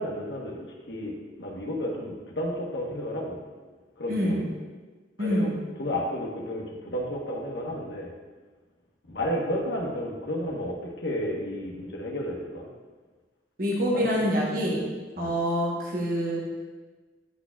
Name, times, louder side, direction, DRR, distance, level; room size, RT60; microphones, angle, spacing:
voice 1, 0.0-3.4 4.0-4.5 5.2-5.5 5.8-8.1 9.1-12.7 13.9-14.3 15.2-15.3, equal, 85° left, -1 dB, 1.1 m, -32 dB
voice 2, 4.1-4.4 5.2-5.5 13.6-14.9 15.2-16.4, equal, 50° right, -4 dB, 1.0 m, -26 dB
9.4 x 4.3 x 2.4 m, 1.3 s
head